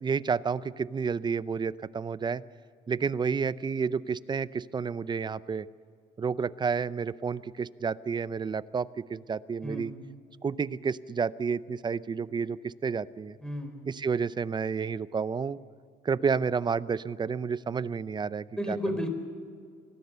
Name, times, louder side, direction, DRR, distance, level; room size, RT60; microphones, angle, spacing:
voice 1, 0.0-2.4 2.9-5.7 6.2-9.9 10.4-13.4 13.9-15.6 16.0-18.8, right 5 dB, 25° right, 17 dB, 0.6 m, -30 dB
voice 2, 13.4-13.8 18.6-19.1, equal, 5° left, 6 dB, 4.2 m, -32 dB
25.0 x 18.0 x 6.9 m, 2.3 s
cardioid pair, 110°, 17 cm